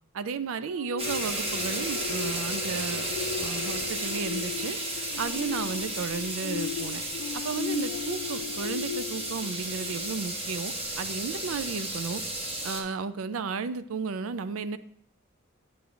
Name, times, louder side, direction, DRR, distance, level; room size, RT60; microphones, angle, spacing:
voice 1, 0.1-3.1 3.4-4.8 5.2-7.0 7.3-12.2 12.6-14.8, right 5 dB, 70° right, 14 dB, 0.4 m, -33 dB
sound 1, 0.7-10.5 11.0-11.2, left 7 dB, 80° left, 0.3 m, -37 dB
sound 2, 1.0-12.8, right 1 dB, 25° right, 1.0 m, -33 dB
8.7 x 6.9 x 2.5 m, 0.64 s
head